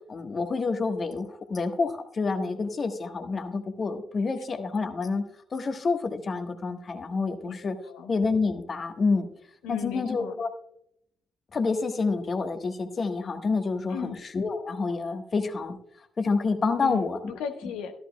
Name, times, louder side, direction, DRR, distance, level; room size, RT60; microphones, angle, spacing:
voice 1, 0.1-5.2 5.5-7.7 8.1-9.3 9.7-10.5 11.5-15.8 16.2-17.2, left 4 dB, 40° left, 7 dB, 1.3 m, -28 dB
voice 2, 7.4-8.1 9.6-10.3 13.9-14.2 16.8-18.0, left 6 dB, 65° left, 5 dB, 1.2 m, -37 dB
14.0 x 11.5 x 2.2 m, 0.72 s
figure-of-eight pair, 45°, 0 cm